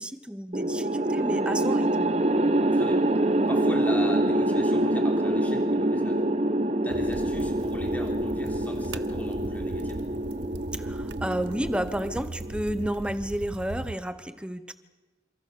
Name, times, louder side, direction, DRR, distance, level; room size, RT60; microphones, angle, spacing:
voice 1, 0.0-2.2 10.7-14.7, equal, 5° right, 11 dB, 1.1 m, -31 dB
sound 1, 0.5-12.8, right 1 dB, 35° right, 1.1 m, -26 dB
voice 2, 2.7-3.1 3.5-6.2 6.8-10.0, left 1 dB, 10° left, 2 dB, 3.8 m, -38 dB
sound 2, 6.9-13.9, right 2 dB, 85° right, 0.9 m, -39 dB
28.0 x 27.0 x 6.9 m, 1.2 s
head